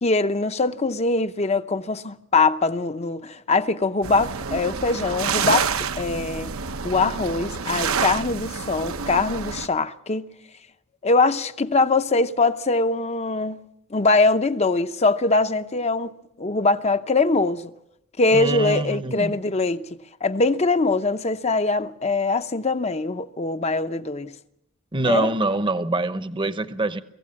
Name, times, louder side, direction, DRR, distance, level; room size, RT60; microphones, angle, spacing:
voice 1, 0.0-5.7 6.0-6.5 6.8-10.2 11.0-13.6 13.9-17.7 18.2-19.9 20.2-24.4 25.0-25.3, left 3 dB, 30° left, 0.7 m, -22 dB
sound 1, 4.0-9.7, right 6 dB, 75° right, 0.9 m, -28 dB
voice 2, 18.3-19.4 24.9-27.0, right 2 dB, 25° right, 0.9 m, -24 dB
24.5 x 15.5 x 8.6 m
head